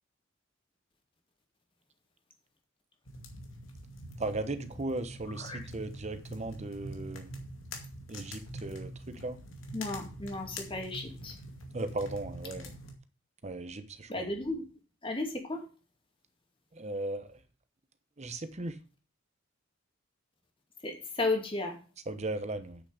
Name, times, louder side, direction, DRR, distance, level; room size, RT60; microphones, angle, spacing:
sound 1, 3.1-12.9, equal, 75° left, 2.3 m, -44 dB
voice 1, 4.2-7.3 8.1-9.4 11.7-12.7 13.4-14.3 16.8-17.2 18.2-18.7 22.1-22.8, right 2 dB, 35° right, 1.0 m, -37 dB
voice 2, 5.4-5.7 9.7-11.3 14.1-14.6 15.0-15.6 20.8-21.8, left 2 dB, 25° left, 2.6 m, -34 dB
8.4 x 6.8 x 6.5 m
head